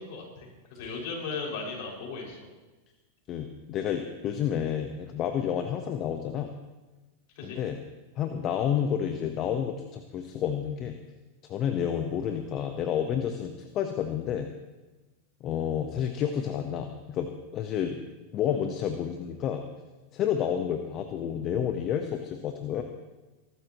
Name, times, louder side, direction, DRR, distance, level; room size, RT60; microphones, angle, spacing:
voice 1, 0.0-2.4 7.4-7.6, left 4 dB, 60° left, -2 dB, 6.0 m, -37 dB
voice 2, 3.3-6.5 7.4-7.8 8.2-11.0 11.5-14.5 15.4-18.1 18.3-19.6 20.1-22.8, left 9 dB, 40° left, 6 dB, 1.1 m, -30 dB
23.0 x 13.0 x 3.1 m, 1.2 s
hypercardioid pair, 110°, 0 cm